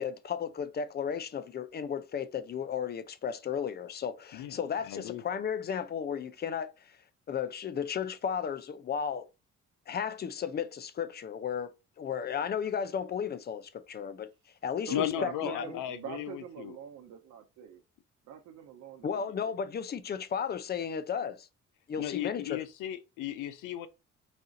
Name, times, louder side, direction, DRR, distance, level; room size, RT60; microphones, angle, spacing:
voice 1, 0.0-7.0 7.3-9.3 9.9-14.3 14.6-15.8 19.0-21.5 21.9-22.6, left 7 dB, 35° left, 0.5 m, -34 dB
voice 2, 4.9-5.2 14.9-16.8 22.0-23.9, left 11 dB, 85° left, 0.5 m, -35 dB
voice 3, 14.9-17.8 18.3-19.6, right 8 dB, 70° right, 0.7 m, -44 dB
4.2 x 2.4 x 3.9 m
cardioid pair, 90°, 30 cm